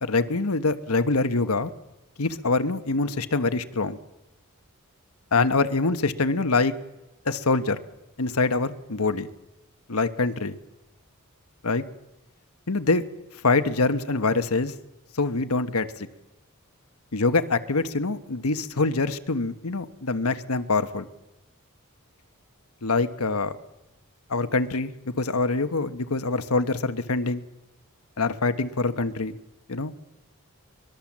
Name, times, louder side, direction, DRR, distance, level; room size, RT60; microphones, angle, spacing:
voice 1, 0.0-1.7 2.2-4.0 5.3-6.7 7.2-7.8 8.2-9.3 9.9-10.6 11.6-11.8 12.7-13.0 13.4-14.7 15.1-16.1 17.1-21.1 22.8-23.5 24.3-24.9 25.2-27.4 28.2-29.3 29.7-29.9, left 3 dB, 85° left, 10 dB, 1.3 m, -24 dB
24.0 x 21.5 x 7.4 m, 0.98 s
head